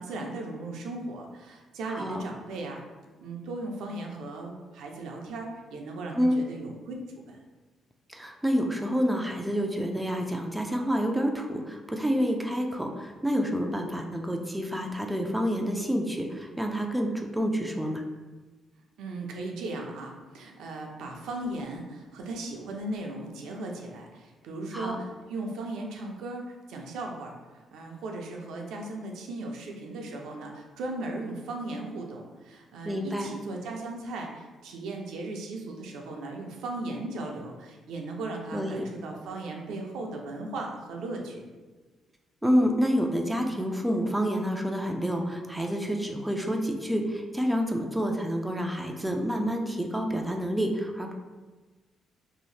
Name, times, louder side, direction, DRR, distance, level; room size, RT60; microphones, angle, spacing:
voice 1, 0.0-2.8 3.2-7.4 19.0-41.4, right 2 dB, 80° right, 1 dB, 0.4 m, -37 dB
voice 2, 1.9-2.2 6.1-6.4 8.1-18.0 24.7-25.0 32.8-33.3 38.5-38.8 42.4-51.1, equal, 5° right, 2 dB, 0.3 m, -28 dB
2.7 x 2.0 x 3.1 m, 1.3 s
cardioid pair, 90°, 0 cm